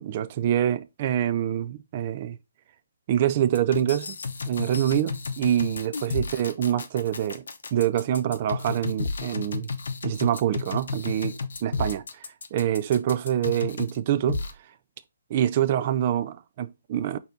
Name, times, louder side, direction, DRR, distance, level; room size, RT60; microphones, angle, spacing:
voice 1, 0.0-2.4 3.1-4.2 4.5-7.4 7.7-9.7 10.0-12.0 12.5-14.4 15.3-17.2, right 11 dB, 40° right, 0.4 m, -25 dB
sound 1, 3.5-14.0 14.3-14.5, left 4 dB, 65° left, 0.6 m, -32 dB
4.1 x 2.8 x 3.8 m
figure-of-eight pair, 135°, 0 cm